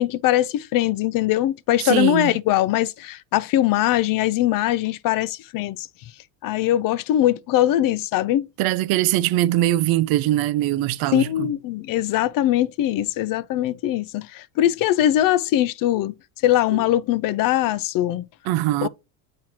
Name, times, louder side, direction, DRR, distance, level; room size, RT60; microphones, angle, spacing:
voice 1, 0.0-5.9 6.4-8.5 11.1-16.1 16.4-18.2 18.8-18.9, left 13 dB, 50° left, 0.5 m, -21 dB
voice 2, 1.8-2.3 8.6-11.5 16.7-16.8 18.5-18.9, right 15 dB, 60° right, 0.5 m, -22 dB
7.7 x 4.3 x 2.9 m
supercardioid pair, 105°, 42 cm